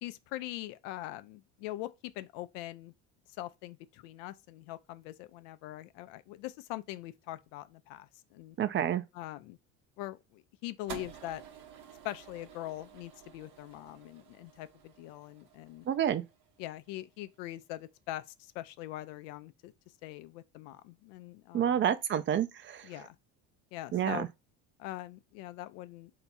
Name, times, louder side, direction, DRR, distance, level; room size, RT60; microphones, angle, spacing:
voice 1, 0.0-1.9 2.2-2.9 3.4-8.6 9.1-9.6 10.0-11.4 12.0-15.9 16.6-19.7 20.0-21.8 22.8-23.2 23.7-24.3 24.8-26.1, left 15 dB, 85° left, 0.6 m, -42 dB
voice 2, 8.6-9.0 15.9-16.2 21.5-22.9 23.9-24.3, right 10 dB, 35° right, 0.4 m, -29 dB
sound 1, 10.9-17.2, right 8 dB, 60° right, 1.1 m, -51 dB
3.5 x 2.9 x 4.1 m
supercardioid pair, 105°, 37 cm